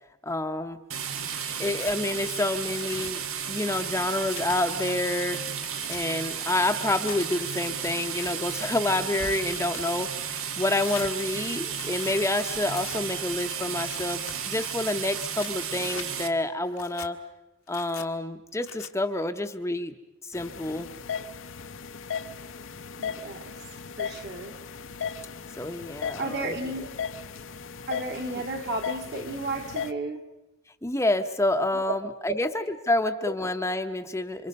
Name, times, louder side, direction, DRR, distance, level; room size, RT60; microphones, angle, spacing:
voice 1, 0.2-0.8 1.6-3.2 3.5-5.4 5.9-17.2 17.7-19.9 20.2-20.9 25.6-26.5 30.8-34.5, left 2 dB, 15° left, 0.8 m, -28 dB
sound 1, 0.9-16.3, right 7 dB, 85° right, 1.6 m, -33 dB
Tearing, 1.4-2.0 2.5-3.1 3.7-4.9 5.4-6.0 6.8-7.2 7.9-8.3 8.9-10.0 10.8-11.1 11.7-12.2 12.7-13.0 13.7-14.3 15.1-16.1 16.7-17.1 17.7-18.1 18.6-18.9, left 7 dB, 90° left, 1.6 m, -43 dB
sound 2, 20.3-29.9, left 6 dB, 65° left, 0.8 m, -37 dB
voice 2, 23.0-23.5 24.0-24.6 26.2-26.9 27.9-30.2 31.8-31.9 32.3-32.4 33.2-33.3, right 2 dB, 50° right, 1.9 m, -33 dB
28.5 x 25.5 x 5.4 m
head